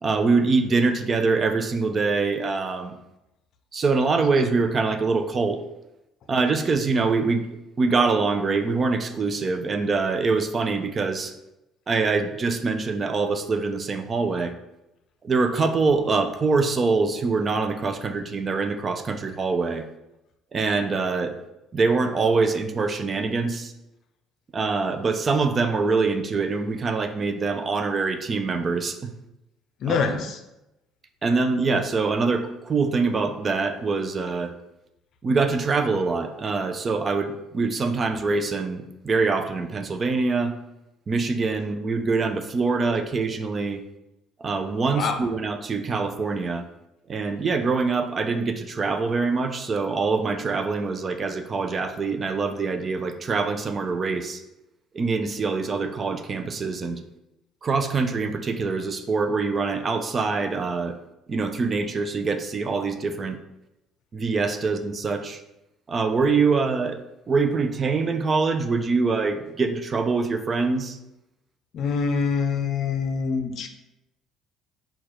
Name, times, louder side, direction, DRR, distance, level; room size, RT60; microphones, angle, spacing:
voice 1, 0.0-2.9 3.7-5.6 6.3-7.4 7.8-11.3 11.9-14.5 15.2-19.8 20.5-21.4 21.7-23.7 24.5-29.1 29.9-30.0 31.2-34.5 35.2-40.5 41.1-43.8 44.4-46.6 47.1-54.4 54.9-57.0 57.6-61.0 61.3-63.4 64.1-65.4 65.9-67.0 67.3-71.0, right 4 dB, 35° right, 7 dB, 0.4 m, -24 dB
voice 2, 29.8-30.4 44.9-45.2 71.7-73.7, left 5 dB, 60° left, 6 dB, 0.5 m, -25 dB
4.3 x 2.3 x 4.7 m, 0.91 s
cardioid pair, 110°, 0 cm